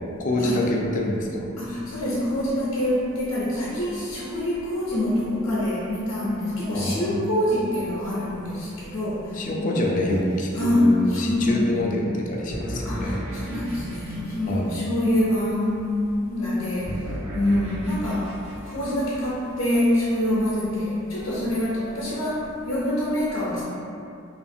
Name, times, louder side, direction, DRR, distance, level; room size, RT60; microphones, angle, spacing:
voice 1, 0.2-1.5 6.7-7.5 9.3-13.2 14.5-14.7, left 1 dB, 40° left, -1 dB, 0.3 m, -26 dB
voice 2, 1.6-9.7 10.5-11.8 12.8-23.6, left 1 dB, 85° left, -9 dB, 0.6 m, -25 dB
sound 1, 10.1-11.3 12.5-15.5 16.8-20.1, equal, 75° right, 1.1 m, -35 dB
2.8 x 2.4 x 2.6 m, 2.6 s
head